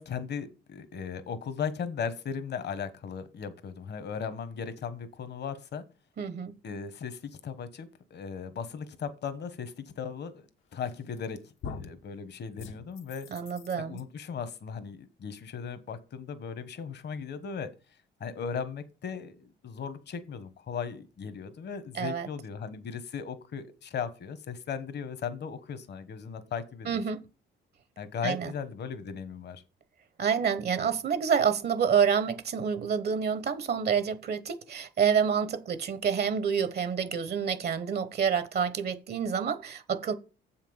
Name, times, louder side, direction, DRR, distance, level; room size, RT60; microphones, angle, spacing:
voice 1, 0.0-5.8 6.6-13.3 13.8-17.7 18.2-27.0 28.0-29.6, left 6 dB, 60° left, 1.3 m, -37 dB
voice 2, 6.2-6.5 13.3-14.0 21.9-22.3 26.9-27.2 28.2-28.5 30.2-40.1, right 7 dB, 55° right, 1.0 m, -28 dB
sound 1, 10.8-11.2 11.6-12.0 12.6-14.0, left 5 dB, 80° left, 1.2 m, -43 dB
7.4 x 5.8 x 7.2 m
cardioid pair, 90°, 20 cm